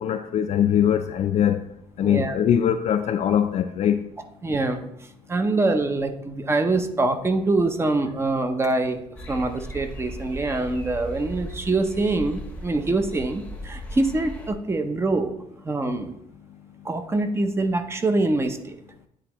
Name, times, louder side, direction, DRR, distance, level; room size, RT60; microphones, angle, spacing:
voice 1, 0.0-1.6 2.0-4.0, left 9 dB, 50° left, 6 dB, 0.4 m, -22 dB
voice 2, 2.0-2.4 4.4-4.8 5.3-9.0 9.3-15.3 15.6-16.2 16.8-18.8, right 2 dB, 20° right, 7 dB, 0.6 m, -24 dB
sound 1, 9.2-14.5, right 1 dB, 10° left, 0.8 m, -37 dB
10.0 x 4.1 x 2.9 m, 0.78 s
cardioid pair, 150°, 14 cm